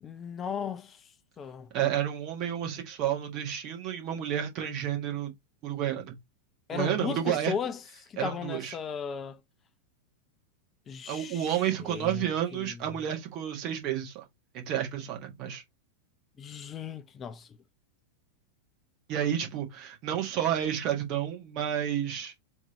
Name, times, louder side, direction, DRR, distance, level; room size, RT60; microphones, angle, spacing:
voice 1, 0.0-1.7 6.7-9.4 10.9-12.8 16.4-17.6, left 7 dB, 25° left, 0.4 m, -37 dB
voice 2, 1.7-5.3 5.6-6.1 6.7-7.5 8.2-8.7 11.1-14.2 14.5-15.6 19.1-22.3, right 10 dB, 40° right, 1.6 m, -30 dB
3.6 x 3.3 x 4.1 m
figure-of-eight pair, 90°, 0 cm